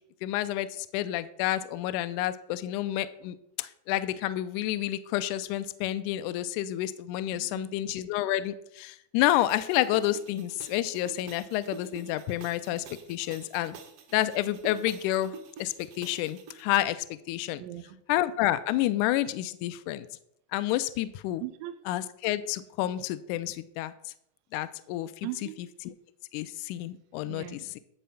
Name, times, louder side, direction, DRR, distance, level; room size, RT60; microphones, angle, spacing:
voice 1, 0.2-13.8 14.1-15.3 15.6-17.6 18.1-20.1 20.5-21.4 21.9-23.9 24.5-25.3 26.3-27.8, left 14 dB, 80° left, 12 dB, 1.8 m, -29 dB
voice 2, 7.3-7.7 17.6-18.0 21.4-21.8 25.2-25.6 27.3-27.7, right 15 dB, 90° right, 12 dB, 2.4 m, -39 dB
sound 1, 9.5-16.6, right 5 dB, 70° right, 1.4 m, -48 dB
11.5 x 4.2 x 7.0 m, 0.75 s
omnidirectional pair, 4.1 m